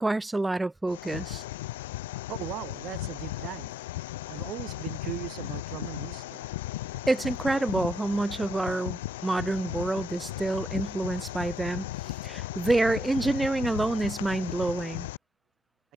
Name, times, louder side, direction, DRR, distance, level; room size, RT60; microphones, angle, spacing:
voice 1, 0.0-1.4 7.1-11.9 12.2-15.1, right 2 dB, 5° right, 3.4 m, -28 dB
sound 1, 0.9-15.2, left 17 dB, 55° left, 3.7 m, -36 dB
voice 2, 2.3-3.7 4.3-6.5, right 15 dB, 35° right, 6.8 m, -38 dB
figure-of-eight pair, 90°, 0 cm